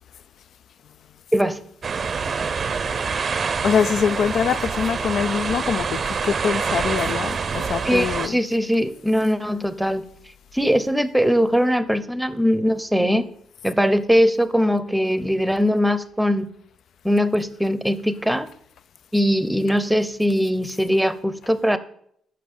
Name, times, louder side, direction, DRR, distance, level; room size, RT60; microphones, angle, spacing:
sound 1, 1.8-8.3, right 5 dB, 45° right, 0.6 m, -26 dB
voice 1, 3.6-8.4, left 7 dB, 65° left, 0.4 m, -23 dB
voice 2, 7.8-10.0 10.5-13.3 13.6-16.5 17.0-18.5 19.1-21.8, equal, 5° right, 0.8 m, -21 dB
8.4 x 6.0 x 7.1 m
cardioid pair, 90°, 0 cm